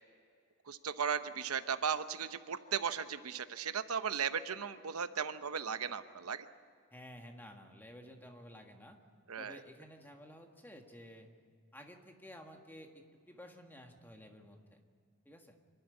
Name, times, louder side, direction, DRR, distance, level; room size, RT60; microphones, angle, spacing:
voice 1, 0.7-6.5 9.3-9.6, right 7 dB, 80° right, 11 dB, 0.8 m, -36 dB
voice 2, 6.9-9.0 9.4-11.3 11.7-14.8 15.2-15.6, equal, 10° left, 3 dB, 1.7 m, -53 dB
26.0 x 11.5 x 9.8 m, 2.3 s
head